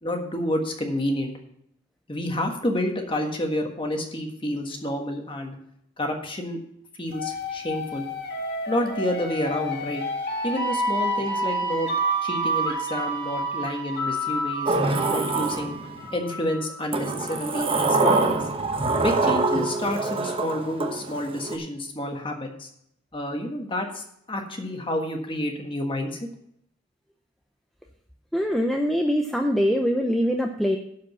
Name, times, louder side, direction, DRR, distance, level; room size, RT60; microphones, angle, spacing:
voice 1, 0.0-1.3 2.1-5.6 6.0-6.6 6.9-8.1 8.7-10.0 10.4-11.9 12.2-14.7 15.1-15.8 16.1-18.5 19.0-22.7 23.1-26.2, left 1 dB, 25° left, 3 dB, 1.4 m, -29 dB
sound 1, 7.1-16.8, right 1 dB, 50° left, 1.5 m, -29 dB
Sliding door, 14.7-16.1 16.9-21.6, right 3 dB, 25° right, 1.0 m, -25 dB
voice 2, 28.3-30.8, equal, ahead, 2 dB, 0.5 m, -23 dB
12.0 x 5.1 x 6.9 m, 0.74 s
head